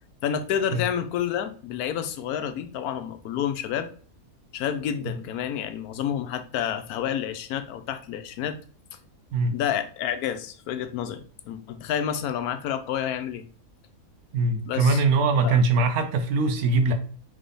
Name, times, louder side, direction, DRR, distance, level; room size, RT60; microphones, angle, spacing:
voice 1, 0.2-3.9 4.5-8.6 9.5-13.4 14.7-15.0 15.4-15.6, left 9 dB, 85° left, 1.1 m, -29 dB
voice 2, 14.3-16.9, right 3 dB, 80° right, 1.2 m, -22 dB
3.7 x 3.5 x 3.8 m
omnidirectional pair, 1.6 m